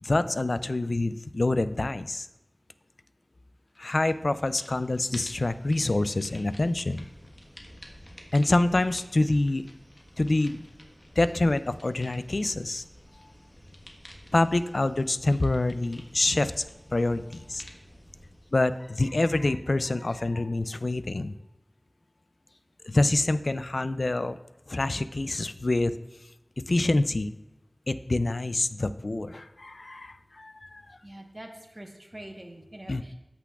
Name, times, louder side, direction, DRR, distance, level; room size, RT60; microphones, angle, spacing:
voice 1, 0.0-2.3 3.8-7.1 8.3-9.7 10.2-10.6 11.2-12.8 14.3-17.6 18.5-21.3 22.8-24.4 24.7-25.9 26.7-27.3 27.9-31.0 32.9-33.0, left 2 dB, 80° left, 12 dB, 0.3 m, -26 dB
sound 1, 3.8-4.1 4.4-19.4, left 1 dB, 45° left, 1.2 m, -51 dB
voice 2, 31.0-33.1, right 1 dB, 40° right, 2 dB, 1.1 m, -45 dB
14.0 x 6.0 x 2.3 m, 0.94 s
wide cardioid pair, 40°, 0 cm